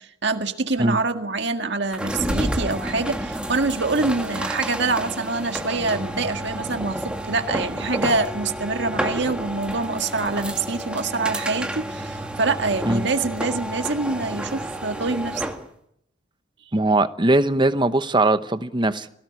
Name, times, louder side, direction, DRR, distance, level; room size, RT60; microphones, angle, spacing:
voice 1, 0.0-15.4, right 3 dB, 60° right, 1.8 m, -25 dB
sound 1, 1.9-15.7, right 1 dB, 5° right, 1.6 m, -30 dB
voice 2, 16.7-19.1, right 2 dB, 25° right, 1.0 m, -20 dB
22.5 x 17.5 x 9.8 m
head